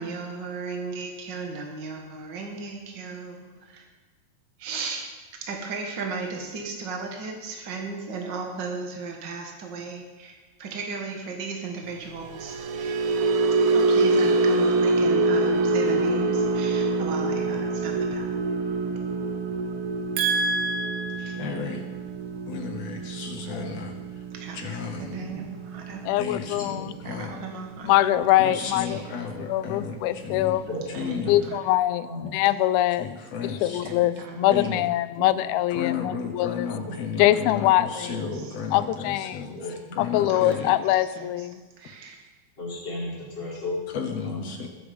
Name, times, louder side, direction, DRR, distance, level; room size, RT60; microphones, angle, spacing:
voice 1, 0.0-3.8 4.6-5.1 5.4-13.0 13.7-18.3 20.2-21.5 24.3-26.0 27.0-27.9 28.7-29.0 30.9-31.6 33.8-34.7 37.2-37.4 38.1-38.3 40.3-40.7 41.2-41.3 41.8-42.2, right 4 dB, 70° right, 2 dB, 1.0 m, -34 dB
sound 1, 12.2-28.6 28.9-29.2 29.6-29.8, right 3 dB, 90° right, 3.0 m, -26 dB
voice 2, 21.4-21.9 22.5-23.9 24.5-25.1 26.2-26.7 27.1-27.4 28.4-30.0 30.2-30.6 31.0-31.4 33.0-33.8 34.5-34.8 35.7-39.5 40.0-40.7 43.9-44.7, left 6 dB, 70° left, 4 dB, 1.6 m, -33 dB
voice 3, 23.5-23.8 25.1-25.5 26.4-27.0 28.2-28.3 30.7-31.0 32.0-32.4 35.2-35.4 36.7-37.0 38.3-38.5 39.5-40.0 42.6-43.8 44.2-44.5, left 1 dB, 25° left, -6 dB, 5.2 m, -35 dB
voice 4, 26.0-26.9 27.8-29.0 29.4-30.7 31.3-33.1 33.6-36.7 37.2-38.2 38.7-39.6 40.0-41.6, left 14 dB, 85° left, 14 dB, 2.5 m, -23 dB
21.0 x 7.9 x 5.1 m, 1.3 s
omnidirectional pair, 4.3 m